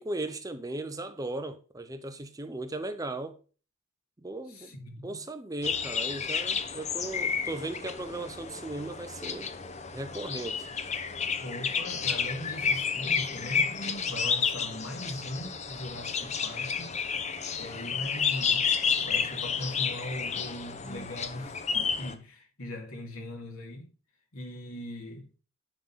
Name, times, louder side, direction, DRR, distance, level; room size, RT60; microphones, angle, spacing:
voice 1, 0.0-3.4 4.2-4.7 5.0-9.5 9.9-10.7, right 2 dB, 15° right, 0.7 m, -37 dB
voice 2, 4.5-5.2 11.4-17.0 17.5-18.6 19.0-23.9 24.3-25.4, left 1 dB, 85° left, 2.4 m, -40 dB
sound 1, 5.6-22.1, left 6 dB, 35° left, 0.8 m, -31 dB
10.5 x 3.9 x 5.5 m
head